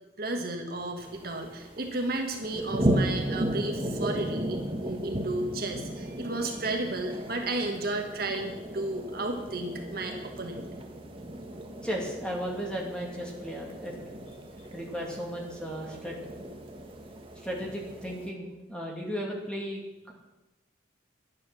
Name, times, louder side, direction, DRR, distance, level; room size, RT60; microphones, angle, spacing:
voice 1, 0.2-10.6, right 2 dB, 50° right, 3 dB, 1.4 m, -33 dB
sound 1, 1.0-18.3, right 1 dB, 30° right, 1.3 m, -35 dB
voice 2, 11.8-13.9 14.7-16.1 17.4-20.1, equal, 5° left, -2 dB, 2.4 m, -35 dB
11.0 x 10.5 x 6.2 m, 1.0 s
head